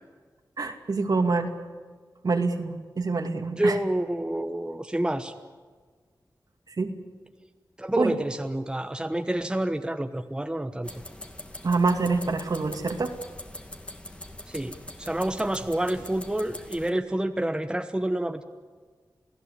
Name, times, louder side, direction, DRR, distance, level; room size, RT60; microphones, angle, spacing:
voice 1, 0.6-1.5 2.2-3.8 6.7-6.9 8.0-8.1 11.6-13.1, right 3 dB, 60° right, 5 dB, 2.5 m, -26 dB
voice 2, 3.6-5.3 7.8-10.9 14.5-18.4, right 1 dB, 10° right, 6 dB, 1.2 m, -28 dB
sound 1, 10.8-16.9, left 1 dB, 15° left, 2.2 m, -42 dB
28.0 x 17.0 x 8.4 m, 1.5 s
wide cardioid pair, 85°, 7 cm